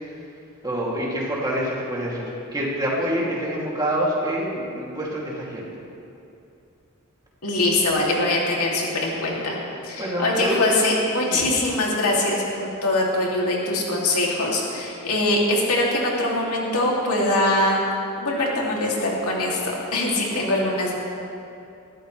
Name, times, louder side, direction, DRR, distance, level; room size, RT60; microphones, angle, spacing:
voice 1, 0.6-5.7 10.0-10.6 11.3-11.4, equal, 20° right, -5 dB, 2.7 m, -26 dB
voice 2, 7.4-17.8 18.2-20.9, left 1 dB, 85° left, -3 dB, 2.7 m, -23 dB
20.5 x 13.5 x 3.3 m, 2.7 s
head